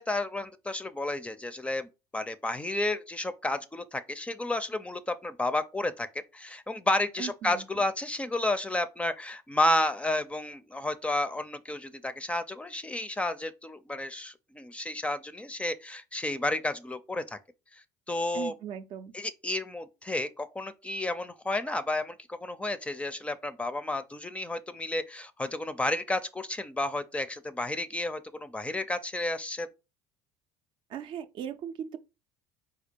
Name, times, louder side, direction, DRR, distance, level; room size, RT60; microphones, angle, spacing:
voice 1, 0.0-6.1 6.3-17.4 17.7-18.5 19.1-29.7, left 2 dB, 10° left, 0.5 m, -31 dB
voice 2, 7.2-7.6 18.3-19.1 30.9-32.0, right 9 dB, 55° right, 0.5 m, -38 dB
4.3 x 2.3 x 4.5 m
hypercardioid pair, 80°, 10 cm